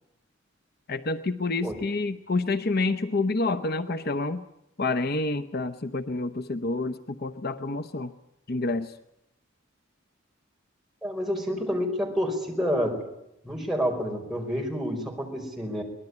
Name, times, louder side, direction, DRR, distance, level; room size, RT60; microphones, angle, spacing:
voice 1, 0.9-4.4 4.8-8.1 8.5-9.0, left 3 dB, 50° left, 10 dB, 0.9 m, -28 dB
voice 2, 11.0-13.0 13.4-15.8, equal, ahead, 0 dB, 5.1 m, -28 dB
24.0 x 19.5 x 9.7 m, 0.85 s
head